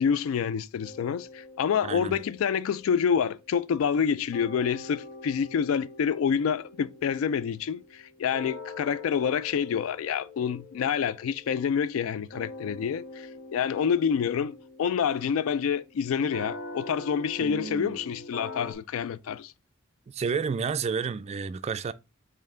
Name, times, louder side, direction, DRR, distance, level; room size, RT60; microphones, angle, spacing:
voice 1, 0.0-13.3 13.5-19.5, left 7 dB, 90° left, 0.3 m, -27 dB
sound 1, 0.8-4.1 4.3-18.7, left 2 dB, 70° left, 1.1 m, -44 dB
voice 2, 1.8-2.2 17.4-18.0 20.1-21.9, right 5 dB, 30° right, 0.3 m, -31 dB
5.3 x 2.7 x 3.7 m
head